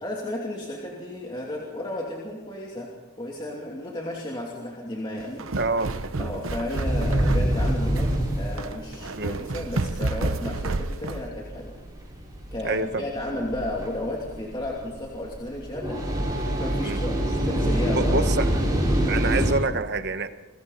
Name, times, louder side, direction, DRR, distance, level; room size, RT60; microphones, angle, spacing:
voice 1, 0.0-5.6 6.2-11.8 12.5-18.3, left 1 dB, 20° left, -3 dB, 2.9 m, -33 dB
sound 1, 5.2-11.3, right 2 dB, 65° right, 0.9 m, -30 dB
voice 2, 5.6-5.9 9.1-9.4 12.6-13.0 16.8-17.0 17.9-18.5 19.1-20.3, right 3 dB, 50° right, 9 dB, 1.3 m, -26 dB
sound 2, 6.8-19.5, right 1 dB, 15° right, 5.0 m, -26 dB
29.0 x 21.5 x 4.2 m, 1.1 s
head